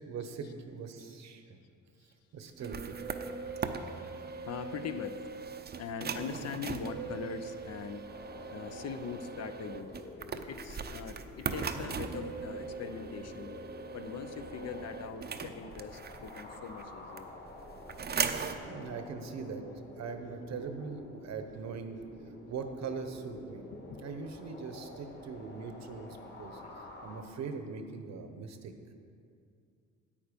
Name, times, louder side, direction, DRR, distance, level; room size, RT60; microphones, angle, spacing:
voice 1, 0.0-1.6 2.0-3.0 18.3-19.7 20.0-22.0 22.5-23.7 24.0-26.6 27.0-28.7, right 5 dB, 60° right, 7 dB, 1.0 m, -41 dB
sound 1, 2.5-16.8 17.2-18.6, right 5 dB, 35° right, 0.6 m, -39 dB
voice 2, 3.5-5.3 5.8-8.1 8.5-10.0 10.5-13.6 13.9-17.3 23.7-24.0 26.6-26.7, left 6 dB, 55° left, 10 dB, 0.7 m, -42 dB
sound 2, 8.1-27.2, left 2 dB, 35° left, 1.6 m, -49 dB
8.9 x 8.7 x 5.2 m, 2.4 s
cardioid pair, 90°, 30 cm